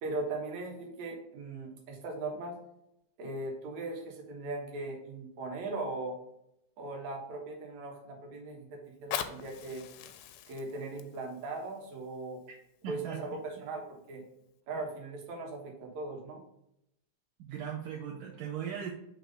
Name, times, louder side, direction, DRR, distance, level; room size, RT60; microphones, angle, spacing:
voice 1, 0.0-2.6 3.2-6.2 6.8-9.8 10.5-12.4 12.9-14.2 14.7-16.4, right 2 dB, 60° right, 0 dB, 2.2 m, -39 dB
Fire, 8.8-13.8 14.5-14.6, left 10 dB, 85° left, 1.9 m, -43 dB
voice 2, 12.8-13.4 17.4-18.9, right 8 dB, 75° right, -1 dB, 2.0 m, -38 dB
6.7 x 3.1 x 5.2 m, 0.81 s
omnidirectional pair, 4.4 m